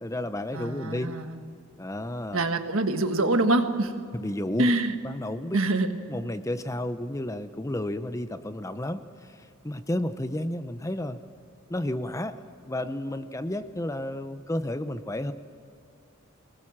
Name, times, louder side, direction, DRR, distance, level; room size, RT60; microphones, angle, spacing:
voice 1, 0.0-1.1 1.8-2.5 4.1-4.7 5.0-5.6 6.1-11.2 11.7-15.3, left 1 dB, 15° left, 11 dB, 0.6 m, -32 dB
voice 2, 0.5-1.3 2.3-3.9 4.6-4.9 5.5-5.9, right 2 dB, 65° right, 7 dB, 1.6 m, -25 dB
24.0 x 20.0 x 7.4 m, 2.4 s
head